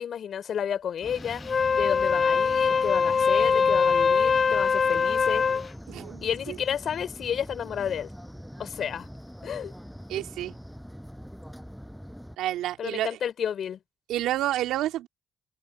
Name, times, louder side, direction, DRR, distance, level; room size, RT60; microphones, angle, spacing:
voice 1, 0.0-5.5 6.2-8.1 8.6-9.1 9.4-9.7 12.8-13.8, left 8 dB, 60° left, 4.1 m, -31 dB
sound 1, 1.0-12.4, equal, ahead, 8.0 m, -43 dB
Wind instrument woodwind instrument, 1.4-5.7, left 5 dB, 40° left, 0.5 m, -22 dB
voice 2, 5.9-6.6 10.1-10.5 12.4-13.2 14.1-15.1, right 13 dB, 80° right, 3.0 m, -29 dB
open air
supercardioid pair, 65°, 0 cm